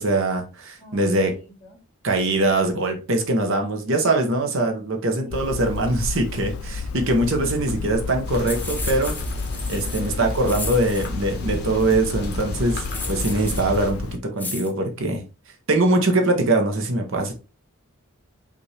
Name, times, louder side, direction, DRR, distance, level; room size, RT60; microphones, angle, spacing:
voice 1, 0.0-1.3 2.0-9.1 9.7-14.1 14.4-15.2 15.7-17.3, right 2 dB, 60° right, 0.9 m, -22 dB
voice 2, 0.8-1.8 5.3-5.4 7.0-7.2 9.8-10.9, left 1 dB, 35° left, 2.1 m, -41 dB
Hammer, 5.3-14.2, left 4 dB, 70° left, 0.3 m, -32 dB
sound 1, 8.2-13.9, left 1 dB, 50° left, 1.2 m, -33 dB
sound 2, 8.5-11.1 12.7-13.7 14.4-14.7, left 3 dB, 10° left, 0.4 m, -34 dB
5.2 x 2.6 x 3.3 m
head